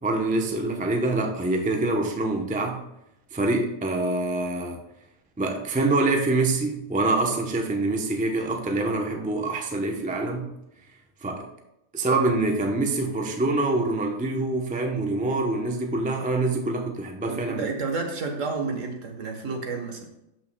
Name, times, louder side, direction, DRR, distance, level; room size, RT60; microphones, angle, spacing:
voice 1, 0.0-2.8 3.3-4.8 5.4-10.5 11.2-11.5 11.9-17.7, right 2 dB, 10° right, 2 dB, 0.4 m, -25 dB
voice 2, 17.3-20.1, right 4 dB, 60° right, 4 dB, 1.4 m, -30 dB
12.5 x 5.7 x 2.2 m, 0.87 s
omnidirectional pair, 1.5 m